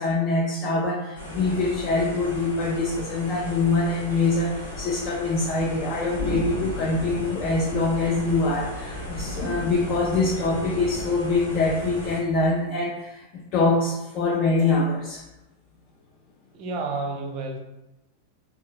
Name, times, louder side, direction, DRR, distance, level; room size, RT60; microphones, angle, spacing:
voice 1, 0.0-15.2, left 3 dB, 40° left, -1 dB, 0.4 m, -24 dB
sound 1, 1.2-12.2, left 1 dB, 80° left, 1.0 m, -35 dB
voice 2, 16.5-17.6, right 3 dB, 40° right, 4 dB, 0.5 m, -30 dB
3.6 x 2.3 x 2.4 m, 0.94 s
figure-of-eight pair, 90°, 0 cm